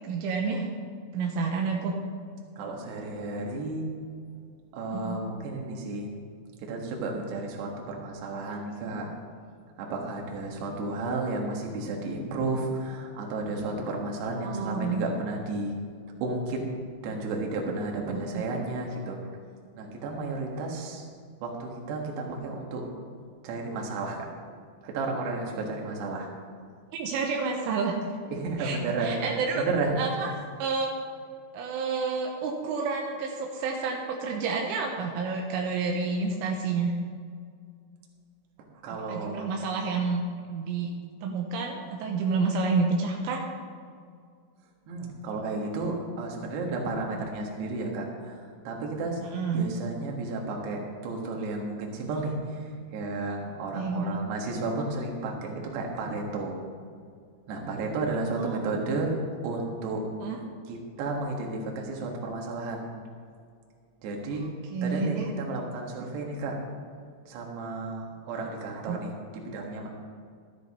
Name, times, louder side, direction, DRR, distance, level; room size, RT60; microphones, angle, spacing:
voice 1, 0.0-0.7 1.1-2.0 4.9-5.2 14.4-15.0 18.1-18.4 26.9-27.9 28.6-29.6 30.0-30.3 30.6-30.9 31.5-37.0 38.9-40.2 40.5-40.9 41.2-43.4 49.3-49.7 53.7-54.1 58.3-58.6 60.2-60.4 64.4-65.3 68.9-69.0, right 4 dB, 80° right, 1 dB, 3.4 m, -29 dB
voice 2, 2.6-3.9 4.7-6.1 6.6-9.1 9.8-15.7 16.2-16.6 17.0-19.2 19.8-21.1 21.4-22.8 23.4-24.3 24.8-26.3 28.3-29.2 29.6-30.0 38.8-39.3 44.9-49.2 49.5-52.6 52.9-56.6 57.5-59.2 59.4-60.0 60.7-62.9 64.0-66.6 67.3-69.1 69.4-69.9, right 3 dB, 65° right, 0 dB, 3.4 m, -32 dB
13.0 x 10.5 x 4.1 m, 2.2 s
omnidirectional pair, 5.7 m